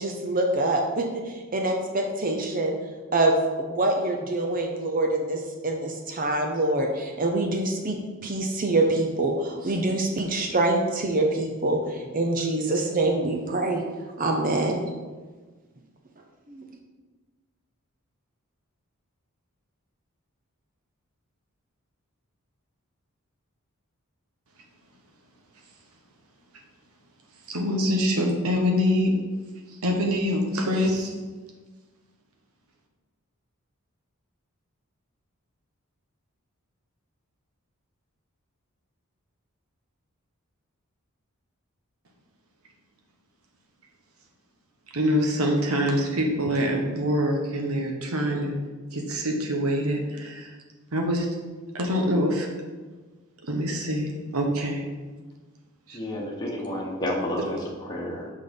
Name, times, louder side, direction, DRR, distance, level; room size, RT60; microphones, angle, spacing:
voice 1, 0.0-2.8 3.1-8.0 8.2-13.8 14.2-14.8 16.5-16.7, right 2 dB, 40° right, 2 dB, 0.7 m, -25 dB
voice 2, 27.5-29.1 29.8-31.1 44.9-48.5 48.9-50.5 50.9-51.3 51.7-52.5 53.4-54.9 55.9-56.0, equal, 80° right, 2 dB, 1.1 m, -25 dB
voice 3, 55.9-58.3, left 1 dB, 20° left, -3 dB, 1.2 m, -30 dB
6.3 x 5.4 x 5.3 m, 1.3 s
head